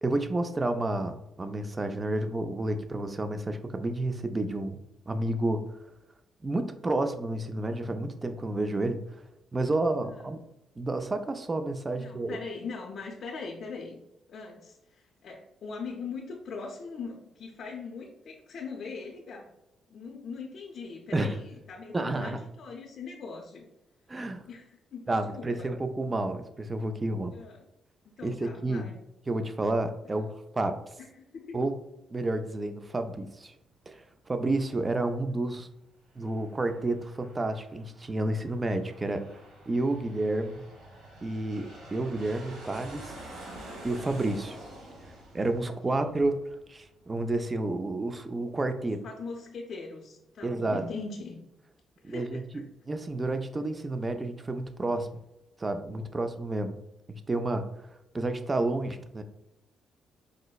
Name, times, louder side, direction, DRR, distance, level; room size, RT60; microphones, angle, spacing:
voice 1, 0.0-4.8 5.1-5.7 6.4-9.2 9.5-10.4 10.8-12.4 21.1-21.4 21.9-22.4 24.1-24.5 25.1-27.3 28.2-28.9 29.3-30.9 31.5-31.8 32.1-33.5 33.9-35.7 36.2-39.3 39.7-40.6 41.2-43.2 43.8-44.6 45.3-49.0 50.4-50.9 52.0-55.1 55.6-56.8 57.3-57.7 58.1-59.2, right 2 dB, 25° right, 8 dB, 0.3 m, -30 dB
voice 2, 12.0-14.0 14.3-19.5 19.9-23.6 24.5-25.7 27.3-27.6 28.2-29.0 30.0-30.2 31.2-31.6 45.9-46.1 48.8-51.4 52.0-52.6, left 4 dB, 60° left, -3 dB, 0.5 m, -41 dB
Aircraft, 35.9-47.1, right 1 dB, 85° right, 1.1 m, -48 dB
4.8 x 2.0 x 2.2 m, 0.89 s
cardioid pair, 90°, 0 cm